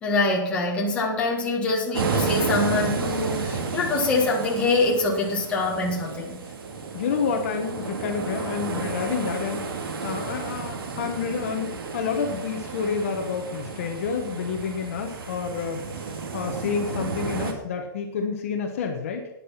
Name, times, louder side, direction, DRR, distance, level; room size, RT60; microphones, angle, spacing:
voice 1, 0.0-6.4, left 3 dB, 10° left, -3 dB, 1.7 m, -24 dB
sound 1, 1.9-17.5, right 4 dB, 85° right, 2.3 m, -32 dB
voice 2, 6.9-19.3, left 6 dB, 40° left, 3 dB, 1.2 m, -29 dB
9.9 x 9.8 x 5.8 m, 0.91 s
hypercardioid pair, 180°, 12 cm